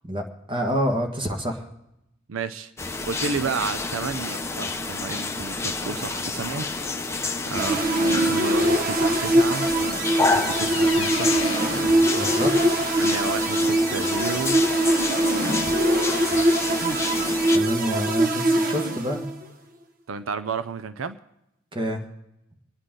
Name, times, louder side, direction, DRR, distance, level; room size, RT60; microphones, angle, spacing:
voice 1, 0.1-1.7 12.1-12.8 17.5-19.3 21.7-22.0, equal, 25° right, 3 dB, 1.5 m, -28 dB
voice 2, 2.3-2.7 3.0-6.7 7.5-7.9 8.3-9.7 10.2-11.5 13.0-14.6 16.8-18.0 20.1-21.2, right 5 dB, 85° right, 12 dB, 0.6 m, -32 dB
sound 1, 2.8-17.6, left 3 dB, 15° left, 0.6 m, -29 dB
sound 2, 6.7-11.6, left 8 dB, 70° left, 0.8 m, -39 dB
sound 3, 7.6-19.4, right 1 dB, 50° right, 1.1 m, -22 dB
24.0 x 9.7 x 3.8 m, 0.86 s
head